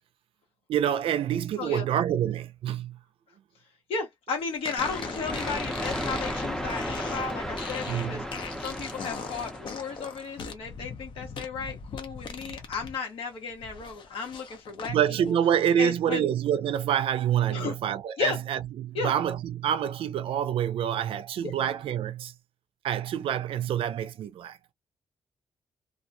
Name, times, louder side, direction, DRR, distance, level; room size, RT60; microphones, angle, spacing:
voice 1, 0.7-3.0 7.9-8.2 14.9-22.3 22.8-24.6, right 9 dB, 80° right, 0.4 m, -27 dB
voice 2, 3.9-15.0 15.3-15.4 15.8-16.3 17.5-17.7 18.2-18.4 18.9-19.1 21.4-21.5, left 5 dB, 85° left, 1.1 m, -34 dB
sound 1, 4.6-13.0 13.3-14.9, left 5 dB, 60° left, 0.7 m, -40 dB
sound 2, 4.8-10.4, equal, 5° left, 0.5 m, -34 dB
2.3 x 2.1 x 2.6 m
cardioid pair, 120°, 9 cm